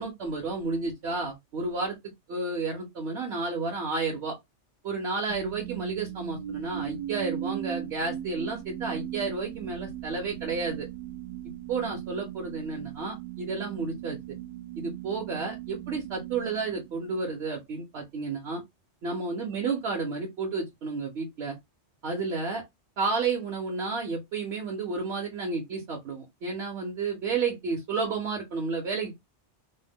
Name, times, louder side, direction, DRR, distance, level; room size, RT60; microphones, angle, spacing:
voice 1, 0.0-2.0 2.3-4.4 4.8-10.9 11.7-14.4 14.8-18.6 19.0-21.6 22.0-22.6 23.0-29.2, right 4 dB, 70° right, 1.0 m, -31 dB
sound 1, 5.3-17.4, right 12 dB, 85° right, 1.1 m, -38 dB
2.5 x 2.1 x 3.3 m
omnidirectional pair, 1.2 m